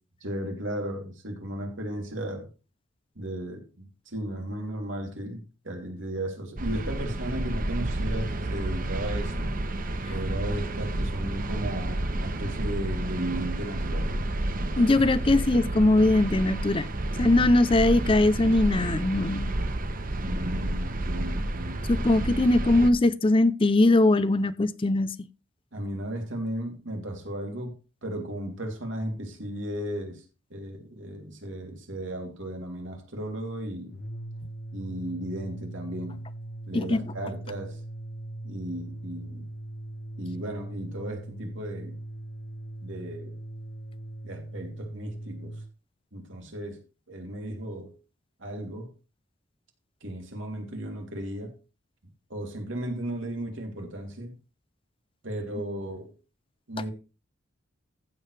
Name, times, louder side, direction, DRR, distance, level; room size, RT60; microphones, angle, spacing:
voice 1, 0.2-2.5 3.1-9.5 10.1-14.1 20.2-21.8 22.5-22.8 25.7-30.2 30.5-33.9 34.7-36.2 36.7-37.8 38.4-39.5 40.2-42.0 42.8-43.3 44.2-45.5 46.1-46.8 47.1-47.9 48.4-48.9 50.0-51.5 52.3-54.3 55.2-56.1 56.7-56.9, right 1 dB, 65° right, 3.1 m, -35 dB
sound 1, 6.6-22.9, right 1 dB, 40° right, 1.0 m, -30 dB
voice 2, 14.8-16.9 17.2-19.5 21.9-25.1 36.7-37.0, left 2 dB, 25° left, 0.5 m, -21 dB
sound 2, 33.8-45.7, right 1 dB, 50° left, 1.2 m, -40 dB
15.0 x 7.7 x 3.3 m
head